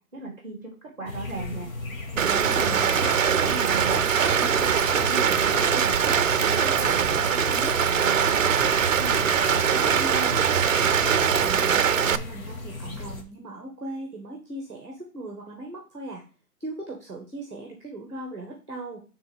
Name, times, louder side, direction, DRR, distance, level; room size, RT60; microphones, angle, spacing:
voice 1, 0.1-0.7 1.0-1.7 2.1-4.0 4.4-8.6 8.9-10.4, right 2 dB, 5° left, -1 dB, 2.2 m, -37 dB
sound 1, 1.1-13.2, left 2 dB, 60° left, 1.4 m, -36 dB
Rain, 2.2-12.2, right 7 dB, 55° right, 0.5 m, -22 dB
voice 2, 2.3-3.0 11.4-16.2 16.6-19.0, right 2 dB, 20° right, 0 dB, 0.9 m, -38 dB
9.1 x 3.6 x 3.5 m, 0.37 s
hypercardioid pair, 175°, 47 cm